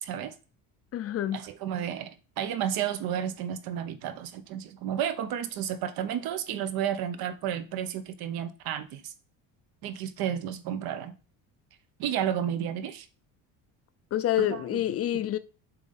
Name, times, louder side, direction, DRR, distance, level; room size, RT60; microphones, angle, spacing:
voice 1, 0.0-0.3 1.3-9.1 9.8-11.1 12.0-13.1 14.4-14.8, right 9 dB, 65° right, 1.0 m, -32 dB
voice 2, 0.9-1.4 14.1-15.4, left 12 dB, 40° left, 0.5 m, -27 dB
7.1 x 3.8 x 4.1 m
cardioid pair, 140°, 39 cm